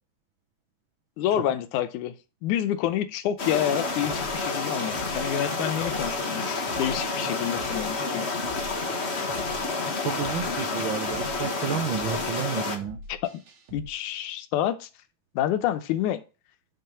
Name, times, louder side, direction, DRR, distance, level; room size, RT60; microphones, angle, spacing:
voice 1, 1.2-2.2 2.4-8.3 13.1-13.4 13.7-14.9 15.4-16.2, left 11 dB, 90° left, 2.2 m, -28 dB
sound 1, 3.4-12.8, left 3 dB, 40° left, 0.9 m, -29 dB
sound 2, 4.0-13.9, right 1 dB, 60° right, 2.6 m, -45 dB
voice 2, 10.0-13.0, right 8 dB, 90° right, 1.1 m, -31 dB
5.6 x 5.6 x 6.8 m
omnidirectional pair, 3.5 m